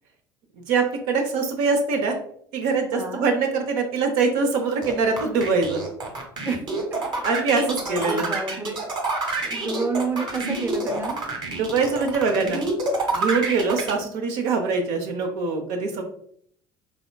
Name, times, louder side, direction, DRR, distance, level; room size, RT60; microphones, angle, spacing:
voice 1, 0.7-2.2 2.5-5.8 7.2-8.3 11.5-12.6 13.1-16.0, right 4 dB, 65° right, 4 dB, 0.7 m, -23 dB
voice 2, 2.9-3.3 6.4-6.6 7.6-8.8 9.4-11.2, right 3 dB, 20° right, 4 dB, 0.7 m, -29 dB
sound 1, 4.8-13.9, right 3 dB, 40° right, 1.3 m, -28 dB
3.6 x 3.5 x 2.2 m, 0.64 s
hypercardioid pair, 70°, 12 cm